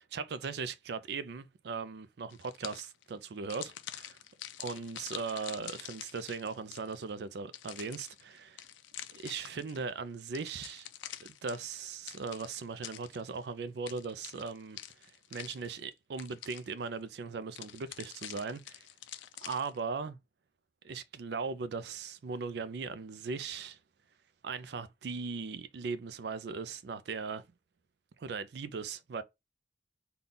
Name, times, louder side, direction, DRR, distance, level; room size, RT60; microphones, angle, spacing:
voice 1, 0.1-4.2 4.6-8.6 9.1-10.9 11.2-18.9 19.4-20.2 20.8-23.8 24.4-27.4 28.2-29.2, right 5 dB, 60° right, 0.4 m, -39 dB
sound 1, 2.3-3.0 3.5-7.1 7.5-9.8 10.3-13.5 13.9-15.9 16.2-16.9 17.6-19.8, left 12 dB, 80° left, 0.4 m, -46 dB
3.9 x 2.3 x 3.5 m
head